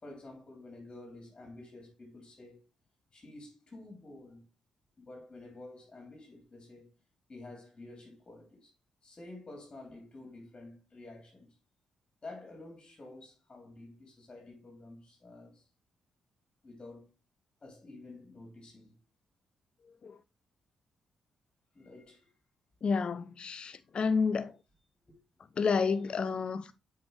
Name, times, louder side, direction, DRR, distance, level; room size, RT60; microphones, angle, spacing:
voice 1, 0.0-2.6 3.1-4.5 5.0-6.9 7.3-8.7 9.0-11.6 12.2-15.6 16.6-17.1 17.6-19.0 21.7-22.3 25.1-25.2, left 2 dB, 35° left, 3.1 m, -50 dB
voice 2, 22.8-24.5 25.6-26.7, left 5 dB, 50° left, 0.4 m, -30 dB
7.7 x 5.0 x 3.2 m
hypercardioid pair, 40°, 2 cm